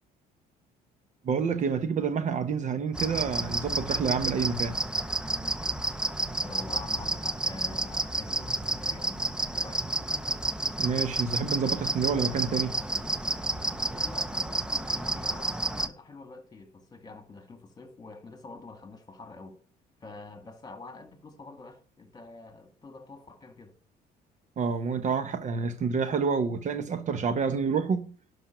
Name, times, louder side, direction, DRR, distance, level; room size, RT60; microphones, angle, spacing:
voice 1, 1.2-4.8 10.8-12.7 24.6-28.1, right 5 dB, 45° right, 1.0 m, -28 dB
sound 1, 2.9-15.9, right 2 dB, 5° right, 0.7 m, -30 dB
voice 2, 6.4-9.3 9.5-9.9 13.9-19.6 20.0-23.7, left 3 dB, 25° left, 2.1 m, -46 dB
11.5 x 5.4 x 6.0 m
cardioid pair, 110°, 17 cm